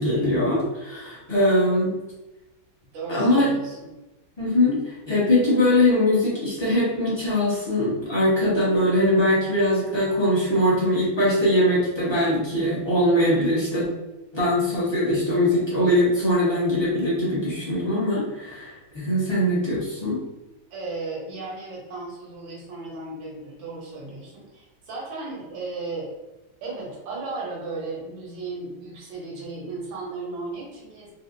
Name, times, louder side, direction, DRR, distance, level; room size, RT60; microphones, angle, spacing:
voice 1, 0.0-1.9 3.1-3.5 4.4-13.9 14.3-20.2, left 1 dB, 20° left, -9 dB, 0.9 m, -22 dB
voice 2, 2.9-3.9 20.7-26.1 26.6-31.1, right 3 dB, 70° right, -4 dB, 1.7 m, -35 dB
4.3 x 2.4 x 2.6 m, 1.0 s
omnidirectional pair, 2.2 m